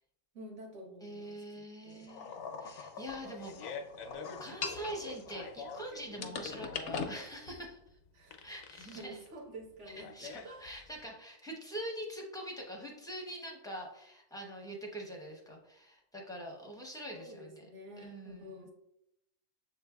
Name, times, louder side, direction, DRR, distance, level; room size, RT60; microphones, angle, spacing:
voice 1, 0.3-2.1 3.2-3.9 6.2-6.4 8.1-8.4 8.9-10.1 10.4-10.6 17.1-18.7, right 1 dB, 65° right, 1 dB, 1.3 m, -50 dB
voice 2, 1.0-3.8 4.4-7.8 8.4-9.2 9.9-17.7 18.0-18.6, right 1 dB, 5° left, -1 dB, 0.5 m, -44 dB
sound 1, 2.1-5.8 6.2-7.1, left 5 dB, 60° left, 0.7 m, -41 dB
Fart, 3.1-11.0, left 5 dB, 90° left, 1.0 m, -47 dB
7.0 x 3.2 x 2.2 m, 0.83 s
omnidirectional pair, 1.4 m